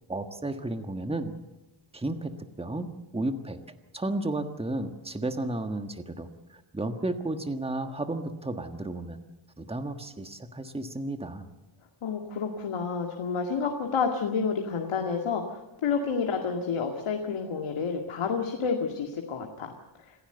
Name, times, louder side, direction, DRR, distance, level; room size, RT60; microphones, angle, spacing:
voice 1, 0.1-1.4 1.9-3.6 3.9-9.2 9.6-11.5, right 2 dB, 10° right, 7 dB, 1.5 m, -33 dB
voice 2, 12.0-19.7, left 5 dB, 80° left, 3 dB, 2.3 m, -29 dB
27.0 x 16.0 x 8.0 m, 1.1 s
wide cardioid pair, 140°, 49 cm